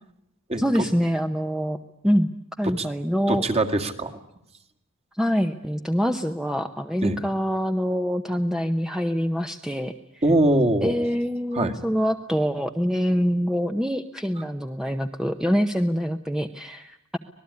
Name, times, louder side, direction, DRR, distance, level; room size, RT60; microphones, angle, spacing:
voice 1, 0.6-1.8 2.0-2.3 2.6-3.4 5.2-10.2 10.8-17.2, equal, 5° right, 6 dB, 0.9 m, -25 dB
voice 2, 3.3-4.1 7.0-7.2 10.2-11.1 11.5-11.8, right 1 dB, 30° right, 4 dB, 2.1 m, -22 dB
25.5 x 19.5 x 9.7 m, 0.80 s
head